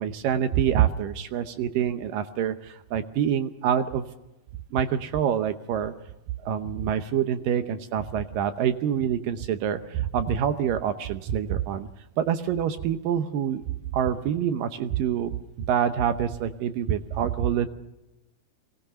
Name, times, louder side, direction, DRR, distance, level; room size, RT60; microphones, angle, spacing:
voice 1, 0.0-4.1 4.7-5.9 6.4-11.9 12.2-13.6 13.9-17.7, right 9 dB, 75° right, 9 dB, 2.4 m, -26 dB
23.0 x 18.5 x 6.8 m, 0.97 s
omnidirectional pair, 4.3 m